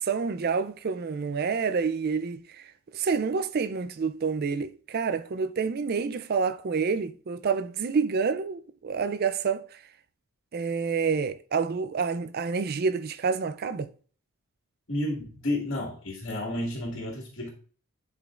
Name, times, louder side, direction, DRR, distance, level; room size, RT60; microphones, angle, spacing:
voice 1, 0.0-2.4 2.9-9.7 10.5-13.9, right 5 dB, 45° right, 0.4 m, -28 dB
voice 2, 14.9-17.5, left 1 dB, 55° left, 1.8 m, -31 dB
10.5 x 5.1 x 2.4 m
head